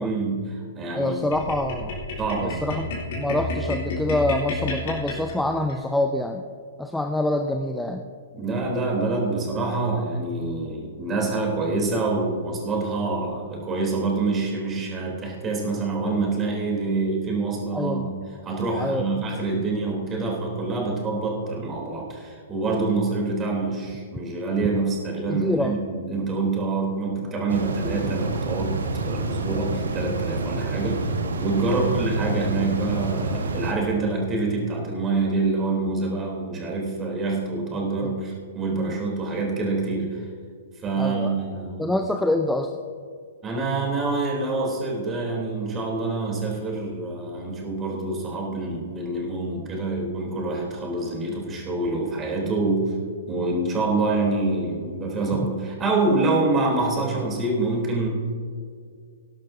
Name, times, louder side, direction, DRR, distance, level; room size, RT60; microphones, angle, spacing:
voice 1, 0.0-1.2 2.2-2.6 8.3-18.1 18.4-31.1 31.4-40.2 40.8-41.9 43.4-52.9 53.3-58.1, right 3 dB, 20° right, -1 dB, 3.4 m, -26 dB
voice 2, 0.9-2.0 2.4-2.9 3.2-6.4 6.8-8.1 17.7-18.1 18.8-19.0 25.3-25.7 31.7-32.0 38.0-38.1 41.0-41.4 41.8-42.7, left 1 dB, 5° left, 5 dB, 0.6 m, -26 dB
sound 1, 1.3-5.8, left 2 dB, 50° left, 3.5 m, -31 dB
sound 2, 27.5-33.7, right 3 dB, 70° right, 1.4 m, -28 dB
18.5 x 11.5 x 2.8 m, 2.1 s
figure-of-eight pair, 115°, 0 cm